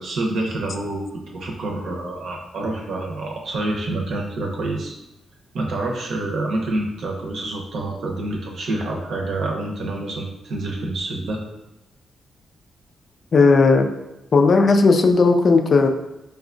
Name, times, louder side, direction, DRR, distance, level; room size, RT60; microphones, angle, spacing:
voice 1, 0.0-5.0 5.5-11.4, right 2 dB, 65° right, 0 dB, 0.7 m, -27 dB
voice 2, 13.3-13.9 14.3-15.9, left 4 dB, 45° left, 5 dB, 0.3 m, -15 dB
4.8 x 2.3 x 2.5 m, 0.97 s
cardioid pair, 120°, 0 cm